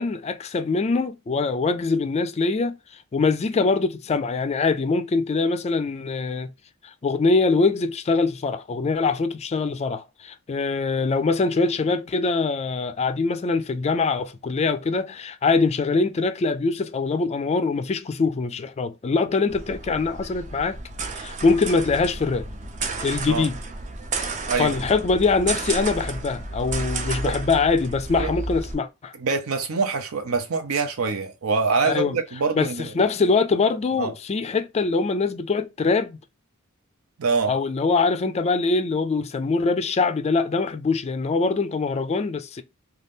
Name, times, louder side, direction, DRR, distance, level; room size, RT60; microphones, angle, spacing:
voice 1, 0.0-2.8 3.1-6.5 6.8-20.8 21.2-22.5 23.0-23.5 24.6-29.1 31.8-32.2 32.6-32.7 32.9-36.2 37.5-42.6, left 4 dB, 30° left, 0.3 m, -23 dB
sound 1, 19.5-28.7, right 3 dB, 35° right, 0.5 m, -32 dB
voice 2, 29.2-32.9 34.0-34.1 37.2-37.5, right 4 dB, 80° right, 0.6 m, -24 dB
2.6 x 2.3 x 3.3 m
head